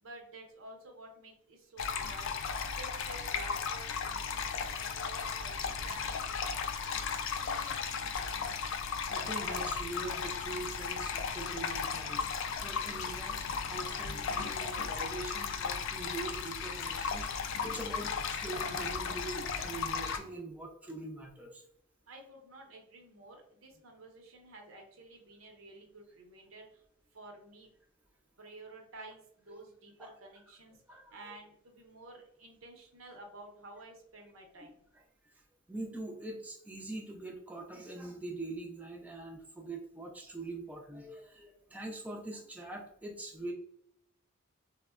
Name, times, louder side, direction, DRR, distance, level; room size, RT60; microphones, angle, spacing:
voice 1, 0.0-2.4 2.7-8.7 22.1-26.8 27.1-27.7 28.4-30.8 31.1-34.8, right 2 dB, 80° right, 2 dB, 0.7 m, -52 dB
sound 1, 1.8-20.2, left 6 dB, 65° left, 0.3 m, -35 dB
voice 2, 9.1-13.4 13.7-17.3 17.6-21.6 29.5-29.6 30.0-30.1 30.9-31.3 34.9-35.4 35.7-43.5, right 2 dB, 10° right, 0 dB, 0.4 m, -43 dB
3.4 x 2.1 x 2.3 m, 0.72 s
head